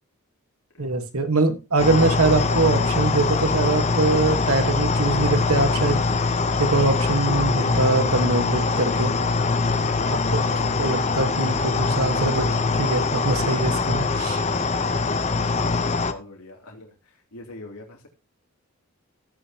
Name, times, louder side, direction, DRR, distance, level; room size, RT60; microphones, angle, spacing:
voice 1, 0.8-9.1 10.1-10.2 10.5-12.4 12.8-14.4, right 3 dB, 85° right, 8 dB, 1.4 m, -23 dB
sound 1, 1.8-16.1, left 4 dB, 30° left, 0.8 m, -23 dB
voice 2, 9.4-10.2 15.6-18.1, left 1 dB, 90° left, 0 dB, 2.9 m, -44 dB
15.0 x 9.1 x 2.9 m, 0.30 s
head